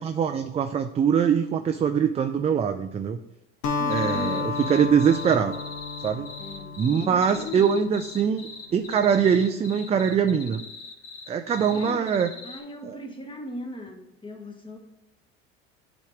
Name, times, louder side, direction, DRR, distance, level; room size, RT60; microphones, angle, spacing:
voice 1, 0.0-3.2 3.9-5.5 6.0-6.3 6.8-10.6 11.3-12.3 12.8-13.0, right 7 dB, 20° right, 0.3 m, -23 dB
Acoustic guitar, 3.6-8.1, left 4 dB, 70° left, 1.0 m, -32 dB
voice 2, 3.8-4.6 6.4-7.8 11.7-14.8, left 1 dB, 15° left, 1.2 m, -38 dB
frogs and cicadas near pond, 3.9-12.6, left 4 dB, 50° left, 1.1 m, -42 dB
8.4 x 3.0 x 4.9 m
hypercardioid pair, 85°, 31 cm